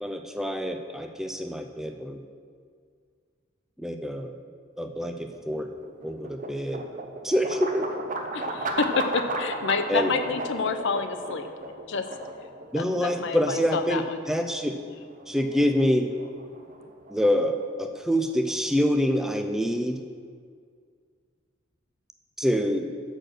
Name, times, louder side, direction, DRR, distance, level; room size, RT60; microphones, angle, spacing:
voice 1, 0.0-2.2 3.8-4.3 4.8-5.7 6.0-6.8 7.2-7.9 9.9-10.1 12.7-14.8 15.3-16.1 17.1-20.0 22.4-22.9, equal, ahead, 6 dB, 0.3 m, -26 dB
sound 1, 5.1-19.2, right 2 dB, 40° right, 0.7 m, -36 dB
voice 2, 8.3-11.5 11.9-12.0 12.8-14.2, left 5 dB, 65° left, 8 dB, 0.5 m, -28 dB
6.5 x 6.0 x 6.5 m, 2.1 s
head